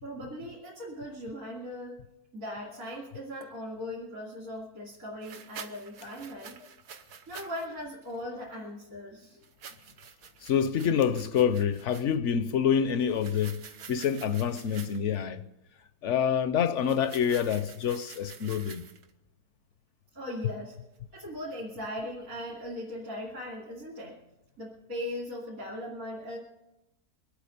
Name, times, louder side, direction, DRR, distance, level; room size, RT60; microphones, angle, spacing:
voice 1, 0.0-2.0 2.3-6.6 7.3-9.4 20.1-20.8 21.1-24.2 24.6-26.4, left 1 dB, 60° right, 3.0 m, -39 dB
sound 1, 3.4-3.5 5.2-7.7 8.0-8.2 9.4-12.2 13.0-15.2 16.8-19.1, right 7 dB, 85° right, 1.5 m, -48 dB
voice 2, 10.4-13.6 13.9-15.4 16.0-18.8, left 8 dB, 65° left, 0.8 m, -27 dB
23.5 x 8.5 x 5.2 m
omnidirectional pair, 1.6 m